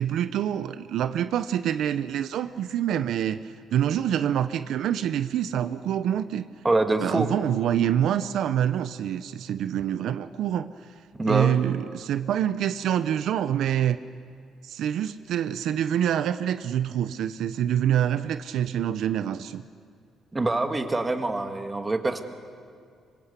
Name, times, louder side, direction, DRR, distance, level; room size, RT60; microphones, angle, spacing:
voice 1, 0.0-6.5 7.0-10.7 11.2-14.0 14.6-19.6, right 10 dB, 70° right, 11 dB, 0.7 m, -26 dB
voice 2, 6.6-7.3 11.2-11.6 20.3-22.2, right 2 dB, 15° right, 6 dB, 1.6 m, -25 dB
25.5 x 24.5 x 8.2 m, 2.3 s
cardioid pair, 150°, 0 cm